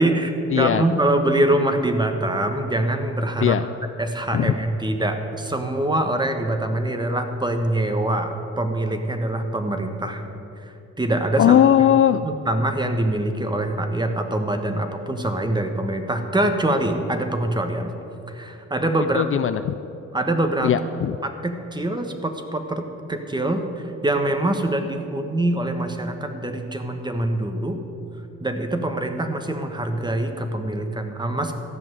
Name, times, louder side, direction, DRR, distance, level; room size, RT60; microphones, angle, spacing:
voice 1, 0.0-3.6 4.0-10.2 10.6-11.9 12.2-17.9 18.3-19.3 20.1-20.7 21.2-22.8 23.1-27.8 28.4-31.5, right 1 dB, 15° right, 6 dB, 1.3 m, -24 dB
voice 2, 0.5-0.8 3.4-3.6 4.3-4.5 11.4-12.2 19.1-19.8 20.6-21.2, left 10 dB, 45° left, 11 dB, 0.4 m, -18 dB
13.5 x 6.0 x 9.0 m, 2.8 s
cardioid pair, 90°, 30 cm